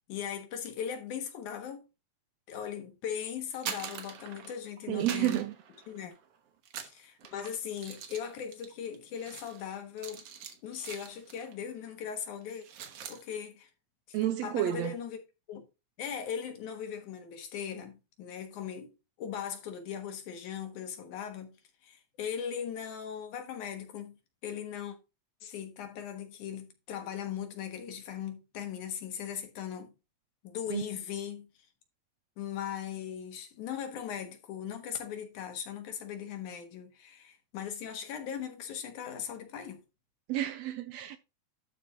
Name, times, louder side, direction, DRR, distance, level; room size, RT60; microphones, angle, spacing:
voice 1, 0.1-1.9 2.5-5.4 5.9-6.1 6.8-10.3 10.6-12.7 13.1-13.7 14.1-15.2 15.5-15.6 16.0-18.9 19.2-21.6 21.8-24.2 24.4-25.0 25.4-29.9 30.4-31.5 32.4-39.8, left 8 dB, 80° left, 2.8 m, -39 dB
sound 1, 3.4-4.7 5.0-6.3 6.6-11.6 11.9-12.1 12.4-13.2, right 8 dB, 60° right, 2.0 m, -44 dB
voice 2, 4.9-5.5 14.1-15.0 30.7-30.8 40.3-41.2, right 13 dB, 80° right, 1.6 m, -30 dB
12.0 x 4.3 x 3.6 m
omnidirectional pair, 3.5 m